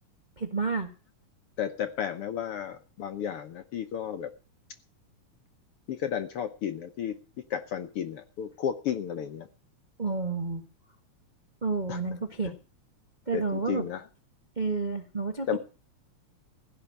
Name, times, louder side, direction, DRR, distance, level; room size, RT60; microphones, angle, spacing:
voice 1, 0.4-0.9 10.0-10.6 11.6-12.5 13.3-13.9 14.6-15.6, right 4 dB, 40° right, 4 dB, 0.6 m, -30 dB
voice 2, 1.6-4.3 5.9-7.2 7.5-9.5 11.9-12.0 12.4-12.5 13.3-14.0 15.5-15.6, left 8 dB, 65° left, 9 dB, 1.5 m, -33 dB
16.0 x 5.8 x 10.0 m, 0.36 s
omnidirectional pair, 3.5 m